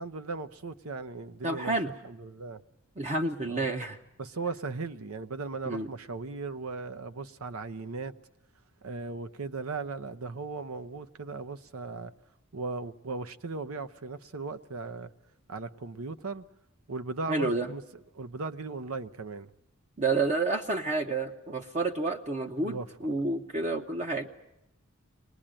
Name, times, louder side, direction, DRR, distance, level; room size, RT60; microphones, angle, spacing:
voice 1, 0.0-1.7 2.0-2.6 3.5-3.7 4.2-8.1 8.8-12.1 12.5-15.1 15.5-16.4 16.9-17.8 18.1-19.5 22.6-23.1, right 3 dB, 85° right, 0.8 m, -37 dB
voice 2, 1.4-1.9 3.0-4.0 5.7-5.9 17.3-17.7 20.0-24.3, right 3 dB, 35° right, 0.8 m, -29 dB
24.0 x 20.0 x 8.9 m
head